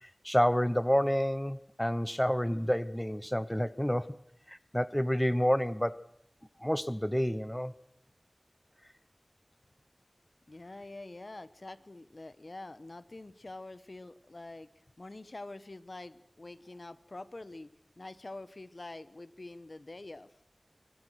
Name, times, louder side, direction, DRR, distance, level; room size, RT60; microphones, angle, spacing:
voice 1, 0.0-4.2 4.5-6.0 6.6-7.7, equal, 10° left, 0.9 m, -29 dB
voice 2, 10.5-14.7 15.0-17.7 18.0-20.3, left 2 dB, 60° left, 1.1 m, -46 dB
25.0 x 24.5 x 6.4 m
wide cardioid pair, 50°, 0 cm